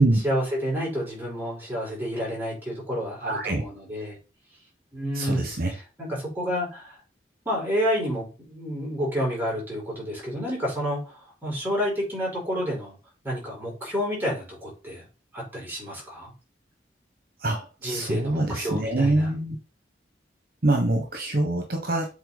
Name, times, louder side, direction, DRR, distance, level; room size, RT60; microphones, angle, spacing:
voice 1, 0.2-4.2 4.9-7.0 7.4-13.0 13.2-15.0 15.3-16.3 17.8-19.3, equal, 10° right, -4 dB, 4.6 m, -30 dB
voice 2, 3.2-3.6 5.1-5.7 17.4-19.6 20.6-22.1, right 2 dB, 55° right, 3 dB, 1.3 m, -24 dB
8.0 x 4.2 x 4.1 m, 0.32 s
head